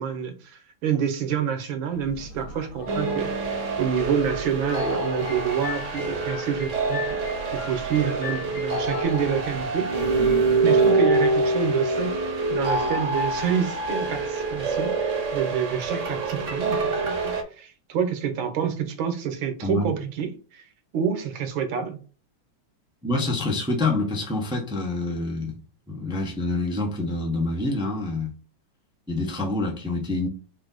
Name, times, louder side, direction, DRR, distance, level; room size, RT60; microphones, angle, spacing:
voice 1, 0.0-7.0 7.5-9.9 10.6-20.7 20.9-22.0, right 8 dB, 70° right, 1.6 m, -28 dB
sound 1, 1.9-10.5, right 2 dB, 80° left, 2.6 m, -43 dB
sound 2, 2.9-17.4, right 3 dB, 45° right, 1.0 m, -25 dB
sound 3, 5.3-9.0, left 8 dB, 65° left, 1.8 m, -39 dB
voice 2, 19.6-19.9 23.0-25.6 25.9-28.3 29.1-30.3, left 2 dB, 5° right, 0.4 m, -26 dB
4.9 x 2.8 x 3.9 m
omnidirectional pair, 2.4 m